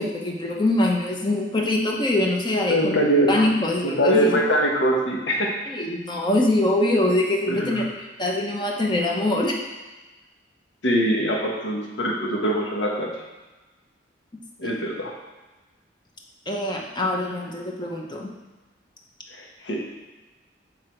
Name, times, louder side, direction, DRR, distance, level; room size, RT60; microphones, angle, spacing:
voice 1, 0.0-3.0 3.3-4.4 5.7-7.8 8.2-9.5 14.6-14.7 16.5-18.3, left 1 dB, 25° left, -1 dB, 0.8 m, -23 dB
voice 2, 2.7-3.4 3.8-5.5 7.5-7.8 10.8-13.1 14.6-15.1 19.3-19.8, equal, 85° left, -1 dB, 1.2 m, -23 dB
8.1 x 3.9 x 4.5 m, 1.2 s
head